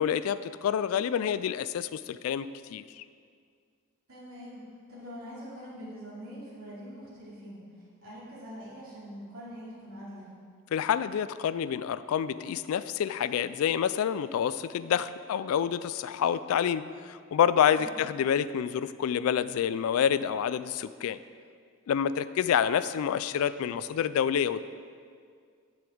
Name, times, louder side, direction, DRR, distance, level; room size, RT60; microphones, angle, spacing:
voice 1, 0.0-3.0 10.7-21.2 21.9-24.6, left 8 dB, 85° left, 14 dB, 0.3 m, -28 dB
voice 2, 4.1-4.6 4.9-10.3 17.7-17.9, equal, 90° right, -8 dB, 2.7 m, -44 dB
8.4 x 8.0 x 4.6 m, 2.1 s
head